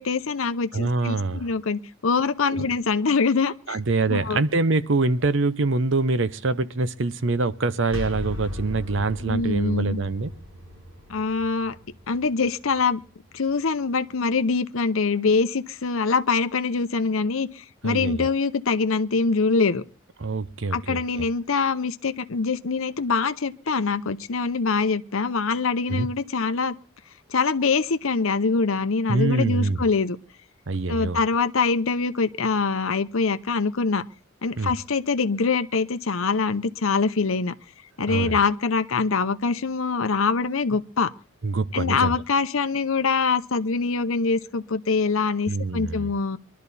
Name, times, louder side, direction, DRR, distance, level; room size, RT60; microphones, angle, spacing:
voice 1, 0.0-3.8 4.1-4.4 9.2-10.0 11.1-11.8 12.1-13.0 13.3-19.8 20.7-26.7 27.3-30.2 30.9-34.0 34.4-37.5 38.0-41.1 41.7-46.4, left 4 dB, 75° left, 0.7 m, -24 dB
voice 2, 0.7-1.5 2.5-2.6 3.7-10.3 17.8-18.3 20.2-21.3 25.9-26.1 29.1-29.8 30.7-31.2 34.6-34.7 38.1-38.4 41.4-42.2 45.5-46.1, right 3 dB, 60° right, 0.7 m, -25 dB
sound 1, 7.8-13.6, left 2 dB, 85° right, 7.5 m, -38 dB
23.0 x 12.0 x 4.2 m
head